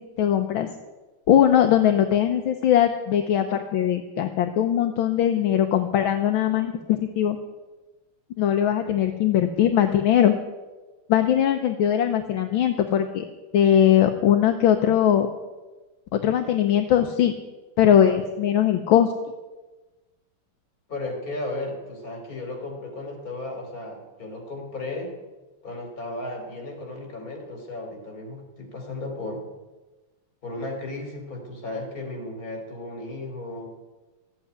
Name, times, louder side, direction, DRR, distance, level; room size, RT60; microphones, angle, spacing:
voice 1, 0.2-0.7 1.3-7.4 8.4-10.3 11.1-13.3 13.5-15.3 16.1-17.3 17.8-19.1, left 10 dB, 70° left, 6 dB, 1.6 m, -20 dB
voice 2, 20.9-25.1 25.6-29.4 30.4-33.7, left 2 dB, 40° left, 2 dB, 3.7 m, -34 dB
14.5 x 8.6 x 9.5 m, 1.2 s
omnidirectional pair, 2.4 m